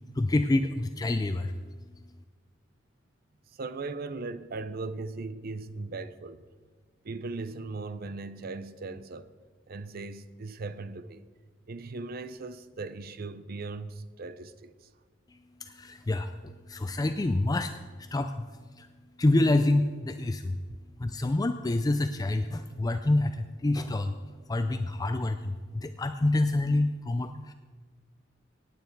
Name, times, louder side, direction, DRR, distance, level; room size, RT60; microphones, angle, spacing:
voice 1, 0.1-1.5 15.3-18.9 19.2-20.6 21.0-24.1 24.5-27.5, left 2 dB, 20° left, 0.4 m, -27 dB
voice 2, 3.5-6.4 7.0-9.3 9.7-11.3 11.7-14.9, right 3 dB, 55° right, 0.6 m, -38 dB
17.5 x 9.1 x 4.6 m
head